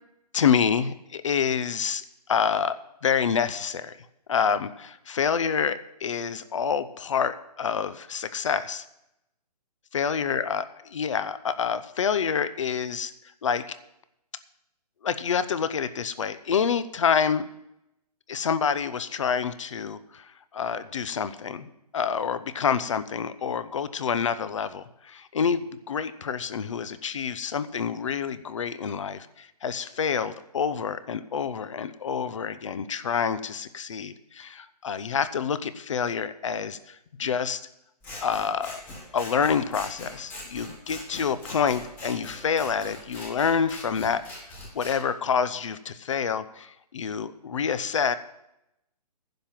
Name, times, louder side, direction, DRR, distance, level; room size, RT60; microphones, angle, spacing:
voice 1, 0.3-4.0 4.3-8.9 9.9-13.1 13.4-13.8 15.0-17.5 18.3-37.6 38.2-38.8 39.1-44.2 44.7-48.2, left 6 dB, 50° left, 14 dB, 0.7 m, -27 dB
Scissors, 38.0-45.0, left 1 dB, 10° left, 1.3 m, -42 dB
10.5 x 5.9 x 8.7 m, 0.83 s
hypercardioid pair, 170°, 21 cm